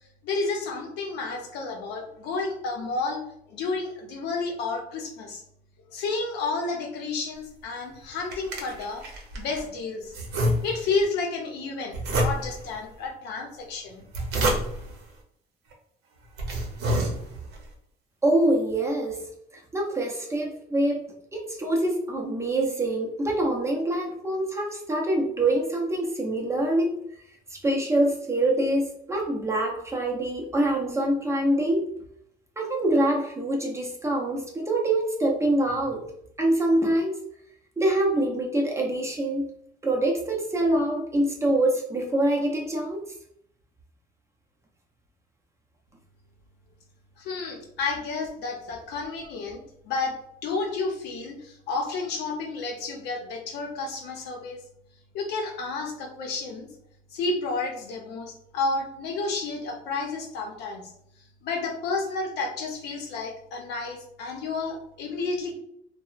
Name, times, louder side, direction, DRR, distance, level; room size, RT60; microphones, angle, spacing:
voice 1, 0.2-3.2 3.5-5.4 5.9-9.0 9.3-10.1 10.6-14.0 47.2-54.6 55.1-56.7 57.1-60.9 61.4-65.5, left 3 dB, 80° left, 1 dB, 0.6 m, -31 dB
sound 1, 7.9-9.7 10.1-11.0 11.9-12.7 13.9-15.0 15.7-15.8 16.2-17.6, right 1 dB, 80° right, 0.7 m, -28 dB
voice 2, 18.2-19.3 19.5-27.0 27.5-31.9 32.6-36.1 36.4-37.2 37.8-39.5 39.8-43.1, right 1 dB, 15° right, -1 dB, 0.5 m, -25 dB
2.8 x 2.0 x 2.4 m, 0.72 s
cardioid pair, 110°, 17 cm